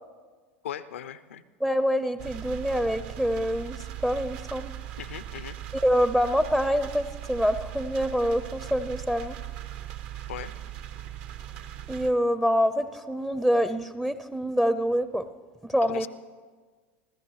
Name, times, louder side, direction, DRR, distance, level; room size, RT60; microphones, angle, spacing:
voice 1, 0.6-1.4 5.0-5.6 10.3-10.5 15.8-16.1, left 10 dB, 80° left, 14 dB, 0.6 m, -38 dB
voice 2, 1.6-4.7 5.8-9.4 11.9-15.3 15.6-16.1, equal, 5° right, 11 dB, 0.5 m, -26 dB
sound 1, 2.2-12.1, right 12 dB, 60° right, 0.9 m, -39 dB
25.0 x 15.0 x 3.2 m, 1.5 s
hypercardioid pair, 85°, 7 cm